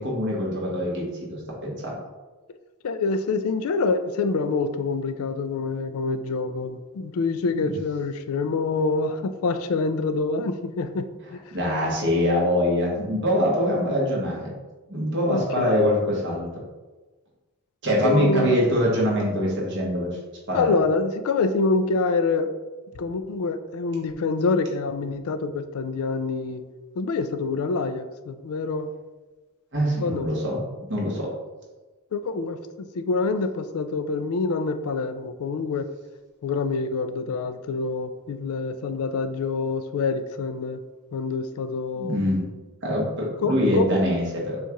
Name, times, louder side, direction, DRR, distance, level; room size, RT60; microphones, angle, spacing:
voice 1, 0.0-1.9 7.6-7.7 11.5-14.5 14.9-16.5 17.8-20.2 20.5-20.8 29.7-30.6 30.9-31.3 42.0-42.4 42.8-43.1 43.4-44.6, equal, 50° right, -3 dB, 1.2 m, -24 dB
voice 2, 2.8-11.4 15.3-15.9 18.0-18.6 20.5-22.5 22.9-26.7 27.0-28.9 30.0-30.3 32.1-35.9 36.4-40.8 41.1-42.2 43.4-44.0, left 3 dB, 75° left, 10 dB, 0.4 m, -26 dB
6.9 x 2.4 x 3.0 m, 1.2 s
head